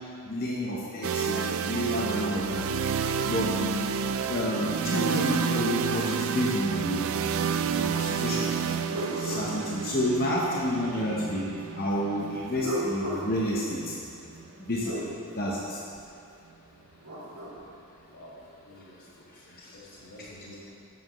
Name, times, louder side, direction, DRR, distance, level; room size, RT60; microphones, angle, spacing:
voice 1, 0.3-2.6 3.3-3.9 4.3-7.1 7.7-8.7 9.2-11.4 11.8-13.8 14.7-14.9 15.4-15.6, equal, 40° left, -5 dB, 0.9 m, -29 dB
sound 1, 1.0-14.9, right 6 dB, 65° right, 0.3 m, -30 dB
sound 2, 7.8-8.0 8.5-10.5 12.3-15.1 16.8-17.6, equal, 80° right, 1.8 m, -37 dB
voice 2, 18.6-20.7, left 1 dB, 80° left, -6 dB, 2.1 m, -50 dB
11.0 x 7.6 x 3.1 m, 2.4 s
head